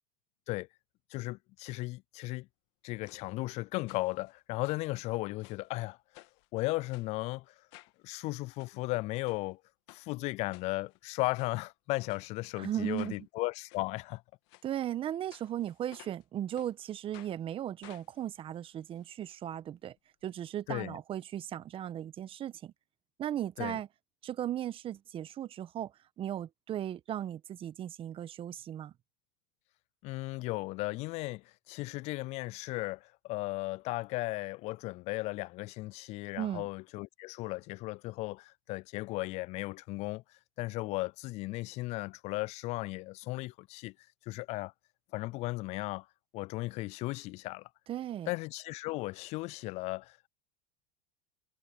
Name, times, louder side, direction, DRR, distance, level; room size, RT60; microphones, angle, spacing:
voice 1, 1.1-2.5 2.8-6.0 6.5-7.5 8.0-9.6 9.9-14.2 20.7-21.0 23.6-23.8 30.0-40.2 40.6-43.9 44.3-44.7 45.1-46.1 46.3-47.7 48.3-50.3, left 21 dB, 45° left, 0.4 m, -36 dB
sound 1, 3.0-3.2 3.9-4.3 4.6-5.7 6.1-6.5 6.9-7.1 7.7-8.0 8.4-8.7 9.2-9.4 9.9-10.0 10.5-11.0 11.3-11.5 12.1-12.3 12.9-13.2 13.7-13.8 14.5-14.7 15.3-16.2 16.6-16.7 17.1-17.3 17.8-19.4 19.6-19.7 20.0-20.1, left 24 dB, 65° left, 1.9 m, -56 dB
voice 2, 12.6-13.3 14.6-19.9 20.2-22.7 23.2-23.9 24.2-28.9 36.4-36.7 47.9-48.3, right 11 dB, 35° right, 1.1 m, -37 dB
hypercardioid pair, 105°, 16 cm